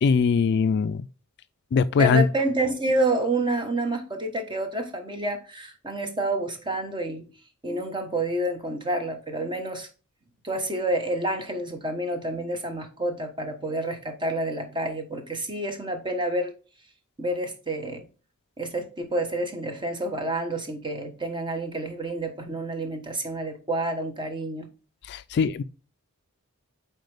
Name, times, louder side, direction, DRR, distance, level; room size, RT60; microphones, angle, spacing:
voice 1, 0.0-1.0 1.7-2.3 25.0-25.6, left 5 dB, 50° left, 0.3 m, -21 dB
voice 2, 2.0-7.3 7.6-9.9 10.4-16.5 17.2-18.1 18.6-24.7, right 1 dB, 20° right, 1.2 m, -28 dB
7.7 x 4.5 x 3.4 m
head